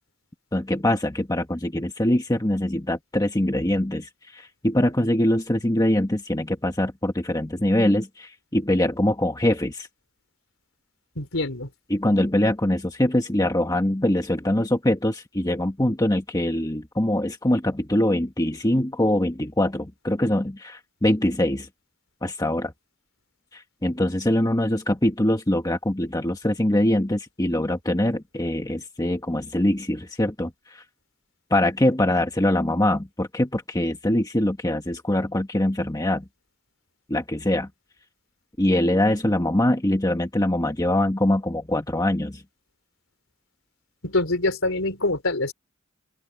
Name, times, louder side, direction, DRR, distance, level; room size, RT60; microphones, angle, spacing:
voice 1, 0.5-9.9 11.9-21.7 22.2-22.7 23.5-30.8 31.5-36.2 37.1-37.7 38.6-42.4, left 1 dB, 20° left, 1.4 m, -23 dB
voice 2, 11.2-11.7 44.0-45.5, left 2 dB, 75° left, 3.9 m, -25 dB
open air
head